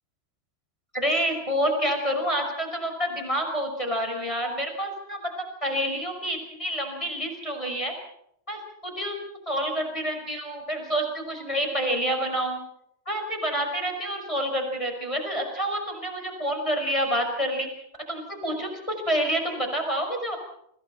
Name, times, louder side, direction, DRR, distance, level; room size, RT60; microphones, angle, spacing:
voice 1, 0.9-5.3 5.6-7.9 8.5-9.2 9.4-12.6 13.0-17.7 18.1-20.4, equal, 5° left, 4 dB, 4.9 m, -28 dB
29.5 x 26.0 x 4.4 m, 0.73 s
omnidirectional pair, 5.6 m